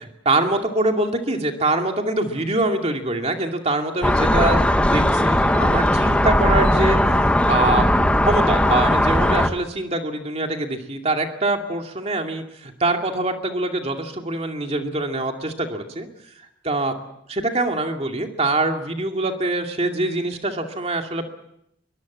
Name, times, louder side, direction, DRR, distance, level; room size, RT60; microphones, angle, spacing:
voice 1, 0.2-7.8 8.2-16.1 16.6-16.9 17.3-21.2, right 2 dB, 35° right, 4 dB, 2.5 m, -24 dB
sound 1, 4.0-9.5, left 1 dB, 5° left, 1.2 m, -18 dB
22.5 x 22.0 x 7.4 m, 0.78 s
head